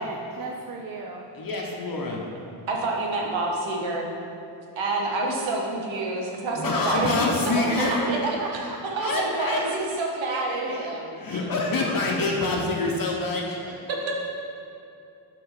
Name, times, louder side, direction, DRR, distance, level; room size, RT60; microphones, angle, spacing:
voice 1, 0.0-1.2 8.1-9.7 13.8-13.9, right 4 dB, 50° right, 1 dB, 0.6 m, -36 dB
voice 2, 1.3-2.2 6.5-8.1 9.0-9.6 11.2-13.6, left 2 dB, 50° left, -1 dB, 0.9 m, -26 dB
voice 3, 2.7-4.1 4.7-8.2 8.5-11.4 13.6-14.1, right 2 dB, 85° right, -1 dB, 1.3 m, -28 dB
5.9 x 4.4 x 5.7 m, 2.7 s
wide cardioid pair, 135°, 45 cm